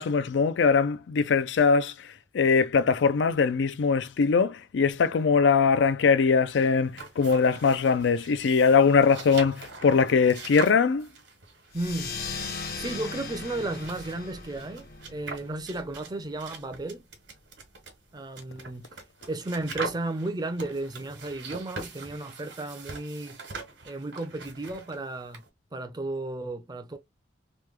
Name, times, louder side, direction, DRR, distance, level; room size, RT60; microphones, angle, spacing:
voice 1, 0.0-2.1 2.3-11.1, left 5 dB, 80° left, 0.4 m, -22 dB
sound 1, 6.8-25.5, right 3 dB, 75° right, 1.2 m, -43 dB
sound 2, 11.7-16.8, left 4 dB, 60° left, 0.8 m, -38 dB
voice 2, 11.7-17.1 18.1-23.4 23.8-25.4 25.7-27.0, right 2 dB, 20° right, 0.5 m, -34 dB
3.1 x 2.2 x 3.2 m
head